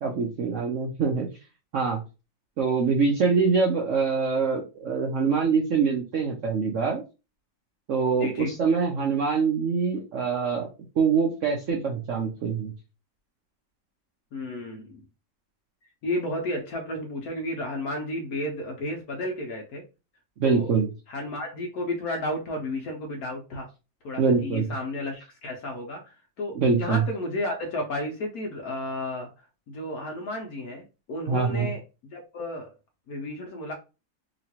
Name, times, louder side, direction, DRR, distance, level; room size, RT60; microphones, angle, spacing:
voice 1, 0.0-1.3 1.7-2.0 2.6-7.0 7.9-10.7 11.0-12.7 20.4-20.9 24.2-24.7 26.5-27.0 31.3-31.7, right 5 dB, 65° right, 0 dB, 0.7 m, -24 dB
voice 2, 8.1-8.6 14.3-15.0 16.0-19.8 20.4-20.7 21.1-23.7 24.0-31.8 32.1-32.7 33.1-33.7, left 1 dB, 65° left, 2 dB, 1.0 m, -32 dB
3.0 x 2.9 x 2.8 m, 0.29 s
omnidirectional pair, 1.9 m